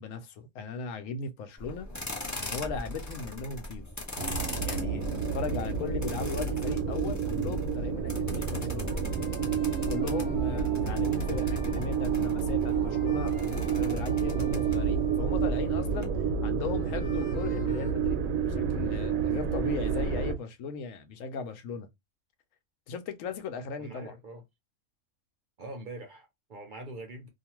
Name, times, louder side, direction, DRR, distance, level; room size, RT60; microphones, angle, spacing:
voice 1, 0.0-1.9 2.4-4.0 4.7-5.1 5.3-8.9 9.9-21.9 22.9-24.1, left 5 dB, 75° left, 1.0 m, -37 dB
sound 1, 1.6-16.0, left 1 dB, 25° left, 0.4 m, -41 dB
sound 2, 4.2-20.3, right 6 dB, 75° right, 1.0 m, -29 dB
sound 3, 8.8-15.9 16.6-17.9, left 2 dB, 50° left, 0.7 m, -51 dB
voice 2, 23.8-24.4 25.6-27.3, right 2 dB, 55° right, 0.6 m, -43 dB
2.5 x 2.4 x 2.9 m
omnidirectional pair, 1.4 m